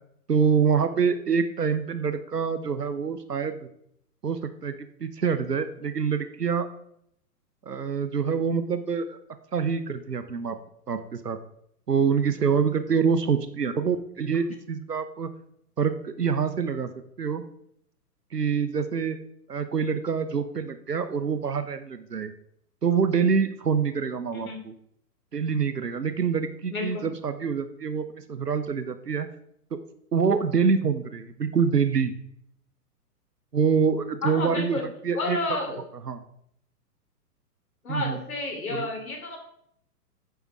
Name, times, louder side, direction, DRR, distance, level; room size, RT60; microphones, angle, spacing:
voice 1, 0.3-3.5 4.2-6.7 7.7-9.2 9.5-10.6 10.9-11.4 11.9-15.3 15.8-16.9 17.2-17.4 18.3-19.2 19.5-22.3 22.8-24.7 25.3-29.3 29.7-29.8 30.1-32.1 33.5-35.4 36.1-36.2 37.9-38.2 38.7-38.9, right 6 dB, 75° right, 11 dB, 1.0 m, -26 dB
voice 2, 26.7-27.1 34.2-34.8 35.1-35.8 37.8-39.4, left 3 dB, 60° left, 1 dB, 3.5 m, -31 dB
9.4 x 7.1 x 4.7 m, 0.71 s
figure-of-eight pair, 115°, 48 cm